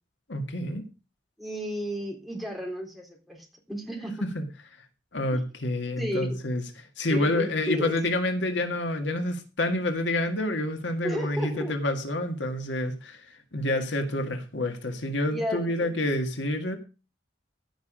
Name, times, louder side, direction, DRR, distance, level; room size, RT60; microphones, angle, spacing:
voice 1, 0.3-0.8 4.3-4.4 5.1-6.6 7.0-16.8, left 1 dB, 80° left, 1.8 m, -28 dB
voice 2, 1.4-4.3 5.3-5.4 6.0-6.4 7.1-8.0 11.0-11.7 15.3-15.9, equal, ahead, 3.8 m, -33 dB
15.0 x 5.9 x 5.1 m
head